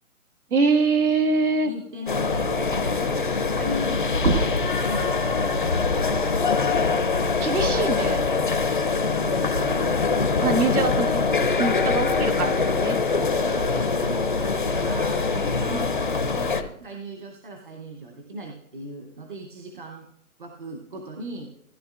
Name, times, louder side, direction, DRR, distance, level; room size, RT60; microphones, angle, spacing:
voice 1, 0.5-1.7 7.4-8.2 10.4-11.1 11.6-13.0, right 4 dB, 90° right, 7 dB, 1.6 m, -23 dB
voice 2, 1.6-6.9 9.2-10.1 10.5-11.1 13.5-20.1 20.4-21.5, right 1 dB, 35° right, 2 dB, 0.8 m, -38 dB
sound 1, 2.1-16.6, left 4 dB, 35° left, 0.5 m, -23 dB
sound 2, 4.1-9.4 9.8-11.5, right 3 dB, 60° right, 1.6 m, -33 dB
16.0 x 10.5 x 2.4 m, 0.78 s
hypercardioid pair, 175°, 43 cm